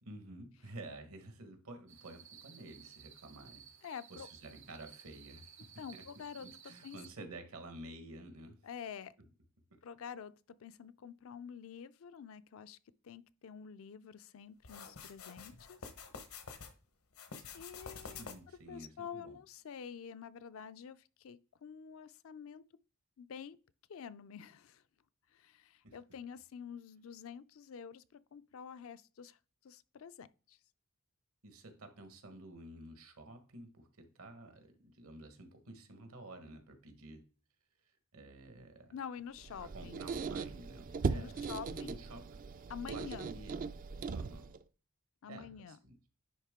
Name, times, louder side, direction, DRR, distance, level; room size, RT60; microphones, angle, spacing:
voice 1, 0.0-3.7 4.1-6.0 6.4-8.6 18.0-19.4 25.8-26.0 31.4-37.3 38.1-39.0 39.6-42.2 42.9-43.6 44.1-44.5 45.3-45.9, right 2 dB, 75° right, 1.3 m, -51 dB
sound 1, 1.9-7.1, right 8 dB, 60° right, 1.0 m, -57 dB
voice 2, 3.8-4.3 5.8-7.3 8.6-9.1 9.8-12.8 13.0-15.9 17.5-18.3 18.7-22.6 23.2-23.6 23.9-24.8 25.3-30.6 38.9-40.1 41.1-42.0 42.7-43.3 45.2-45.8, left 7 dB, 65° left, 0.4 m, -48 dB
sound 2, 14.6-16.7 17.1-18.6, left 5 dB, 80° left, 1.0 m, -48 dB
Squeak, 39.4-44.6, right 4 dB, 40° right, 0.3 m, -39 dB
10.0 x 3.5 x 3.6 m
head